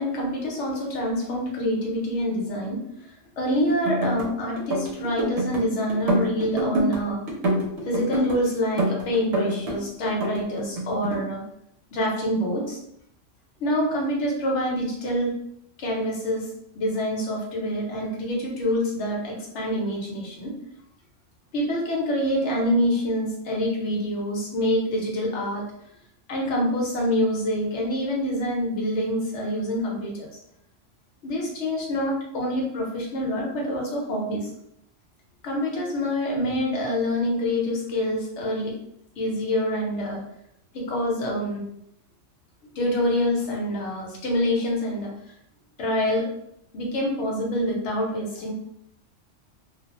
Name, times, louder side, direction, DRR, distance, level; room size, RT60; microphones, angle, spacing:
voice 1, 0.0-7.2 7.8-11.4 11.9-12.8 13.6-15.3 15.8-16.5 16.7-20.5 21.5-25.6 26.3-30.3 31.2-34.5 35.4-38.7 39.2-40.2 40.7-41.6 42.8-45.1 45.8-46.2 46.7-48.5, equal, 65° left, -2 dB, 1.0 m, -26 dB
sound 1, 3.7-4.3 4.6-5.6 5.9-7.0 7.3-8.4 8.8-9.8 10.0-11.2, right 1 dB, 65° right, 0.9 m, -26 dB
2.4 x 2.1 x 2.9 m, 0.75 s
omnidirectional pair, 1.3 m